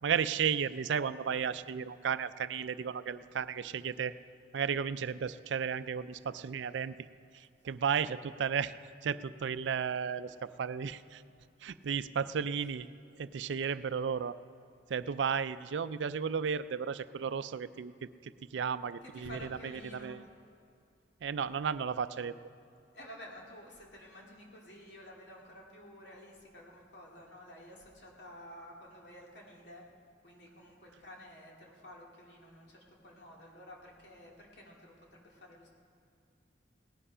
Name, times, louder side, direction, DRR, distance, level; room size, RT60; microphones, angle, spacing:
voice 1, 0.0-4.1 4.5-6.9 7.3-8.7 9.0-11.2 11.6-12.9 13.2-14.4 14.9-17.9 18.2-20.2 21.2-22.3, right 7 dB, 85° right, 14 dB, 0.4 m, -34 dB
voice 2, 19.0-20.2 22.9-29.8 30.2-35.7, equal, 75° left, -2 dB, 2.4 m, -51 dB
18.0 x 10.0 x 5.6 m, 2.4 s
head